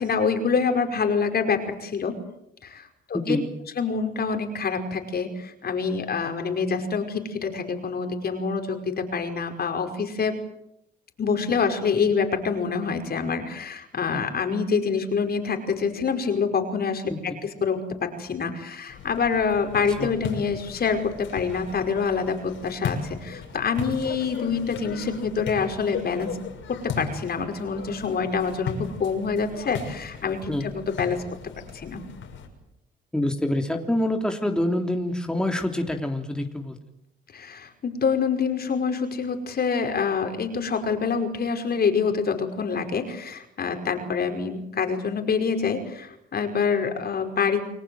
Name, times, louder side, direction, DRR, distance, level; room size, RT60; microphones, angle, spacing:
voice 1, 0.0-2.2 2.6-3.4 3.8-10.3 11.2-26.4 26.7-31.2 31.7-32.0 37.3-47.6, left 5 dB, 50° left, 5 dB, 5.3 m, -26 dB
voice 2, 3.1-3.4 20.0-20.1 30.5-30.7 33.1-36.7, left 1 dB, 5° left, 3 dB, 3.4 m, -26 dB
sound 1, 18.9-32.5, left 6 dB, 75° left, 6.4 m, -37 dB
29.5 x 21.5 x 7.9 m, 0.81 s
cardioid pair, 90°, 20 cm